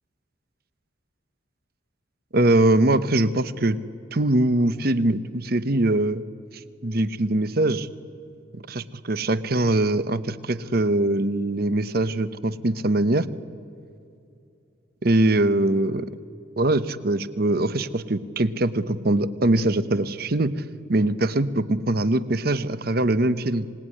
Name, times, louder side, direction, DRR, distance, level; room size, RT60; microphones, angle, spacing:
voice 1, 2.3-3.8 4.1-6.2 6.8-7.9 8.5-13.3 15.0-16.1 16.6-20.6 20.9-23.7, right 2 dB, 50° right, 14 dB, 0.9 m, -22 dB
27.0 x 19.0 x 9.9 m, 2.6 s
head